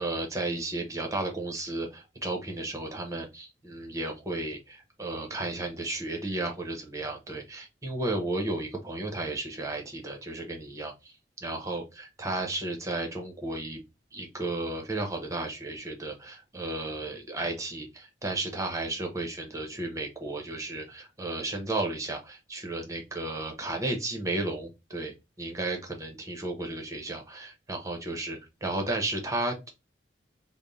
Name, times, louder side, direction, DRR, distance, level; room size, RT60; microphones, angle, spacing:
voice 1, 0.0-11.1 11.4-13.8 14.1-25.1 25.4-29.7, right 2 dB, 20° right, 3 dB, 0.9 m, -33 dB
3.4 x 2.2 x 3.9 m, 0.24 s
head